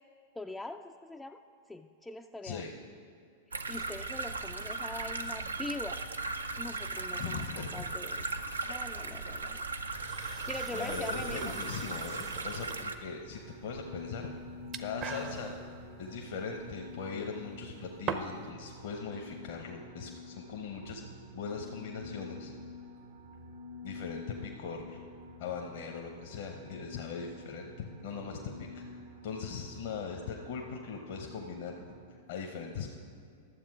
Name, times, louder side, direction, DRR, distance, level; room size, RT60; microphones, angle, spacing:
voice 1, 0.4-1.4 1.7-2.6 3.5-6.0 6.6-8.3 8.7-9.6 10.2-11.5, left 2 dB, 10° left, 4 dB, 0.3 m, -42 dB
voice 2, 2.4-2.7 7.2-7.9 8.5-8.7 10.7-14.3 14.8-15.5 16.0-21.0 21.3-22.5 23.8-25.0 25.4-28.8 29.2-31.9 32.3-32.9, left 5 dB, 60° left, 2 dB, 0.8 m, -40 dB
sound 1, 3.5-13.0, right 3 dB, 85° right, 0.5 m, -37 dB
sound 2, 9.9-18.5, right 7 dB, 35° right, 0.6 m, -44 dB
sound 3, 13.3-32.0, left 3 dB, 70° right, 0.9 m, -48 dB
12.0 x 7.3 x 4.8 m, 2.5 s
figure-of-eight pair, 100°, 0 cm